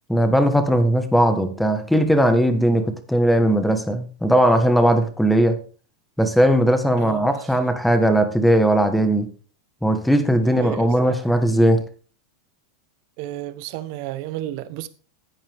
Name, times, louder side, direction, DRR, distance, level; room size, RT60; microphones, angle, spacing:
voice 1, 0.1-5.6 6.2-9.3 9.8-11.8, right 1 dB, ahead, 1.5 m, -18 dB
voice 2, 7.0-7.3 10.4-11.2 13.2-14.9, right 14 dB, 55° right, 1.2 m, -32 dB
14.5 x 8.9 x 3.6 m
supercardioid pair, 135°, 2 cm